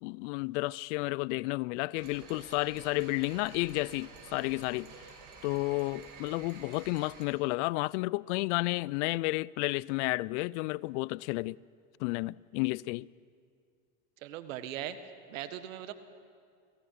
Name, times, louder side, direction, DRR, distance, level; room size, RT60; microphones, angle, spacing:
voice 1, 0.0-4.9 5.4-11.6 12.0-13.1, left 22 dB, 65° left, 0.5 m, -32 dB
sound 1, 1.9-7.3, right 5 dB, 50° right, 5.8 m, -50 dB
voice 2, 14.2-15.0 15.3-15.9, right 12 dB, 75° right, 1.7 m, -39 dB
29.0 x 18.0 x 5.8 m
supercardioid pair, 105°, 39 cm